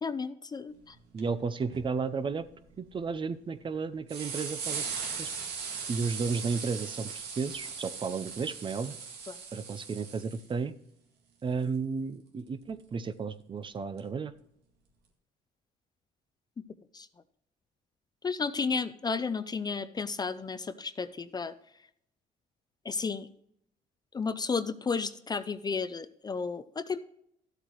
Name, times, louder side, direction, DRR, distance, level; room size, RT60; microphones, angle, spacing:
voice 1, 0.0-1.0 9.3-9.4 16.9-17.1 18.2-21.5 22.8-23.3 24.1-27.0, left 5 dB, 25° left, 13 dB, 0.4 m, -33 dB
sound 1, 0.9-1.0 1.2-1.3 1.6-1.8 2.4-3.1 3.7-3.8 4.1-10.5 12.6-12.7 14.0-14.1, right 5 dB, 75° right, 2.0 m, -39 dB
voice 2, 1.1-2.5 2.8-4.9 5.2-5.3 5.9-9.0 9.5-10.7 11.4-14.3, right 5 dB, 30° right, 13 dB, 0.6 m, -33 dB
13.0 x 8.0 x 3.1 m, 0.75 s
cardioid pair, 110°, 17 cm